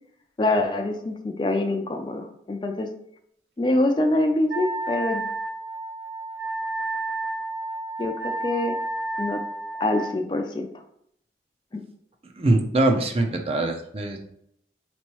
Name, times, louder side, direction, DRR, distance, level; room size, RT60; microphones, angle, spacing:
voice 1, 0.4-2.9 3.6-5.2 8.0-8.8 9.2-9.4 9.8-10.7, left 2 dB, 25° left, 4 dB, 0.3 m, -25 dB
Wind instrument woodwind instrument, 4.5-10.1, right 2 dB, 80° right, 0.7 m, -31 dB
voice 2, 12.2-14.3, right 2 dB, 35° right, 4 dB, 0.5 m, -23 dB
4.4 x 3.0 x 2.9 m, 0.70 s
head